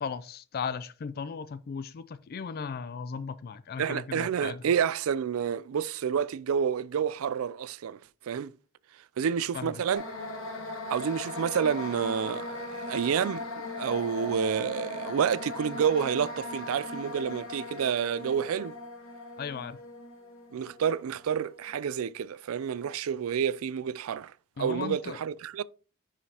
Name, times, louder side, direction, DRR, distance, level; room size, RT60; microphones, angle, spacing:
voice 1, 0.0-4.6 9.5-9.8 19.4-19.8 24.6-25.2, left 6 dB, 45° left, 0.3 m, -36 dB
voice 2, 3.8-8.0 8.2-8.5 9.2-10.0 10.9-18.7 20.5-24.3 24.6-25.6, right 7 dB, 75° right, 0.4 m, -29 dB
sound 1, 9.9-21.8, left 2 dB, 65° left, 1.5 m, -39 dB
10.5 x 4.9 x 2.8 m
head